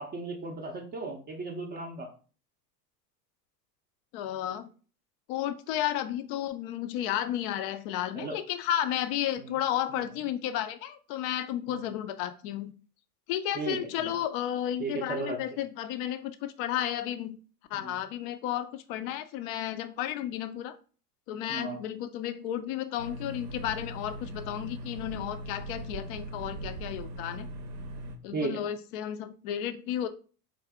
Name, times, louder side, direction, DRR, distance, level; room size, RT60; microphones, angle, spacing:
voice 1, 0.0-2.1 8.2-8.4 9.4-9.6 9.9-10.1 11.7-11.8 13.5-14.1 14.8-15.4 17.7-18.0 21.5-21.8 28.3-28.6, right 3 dB, 20° right, 0 dB, 0.5 m, -35 dB
voice 2, 4.1-4.7 5.3-12.7 13.3-17.4 17.7-20.8 21.3-27.5 28.2-30.1, left 11 dB, 40° left, 10 dB, 0.4 m, -33 dB
sound 1, 23.0-28.2, right 1 dB, 75° right, 0.7 m, -40 dB
3.7 x 2.6 x 3.4 m, 0.38 s
figure-of-eight pair, 75°, 48 cm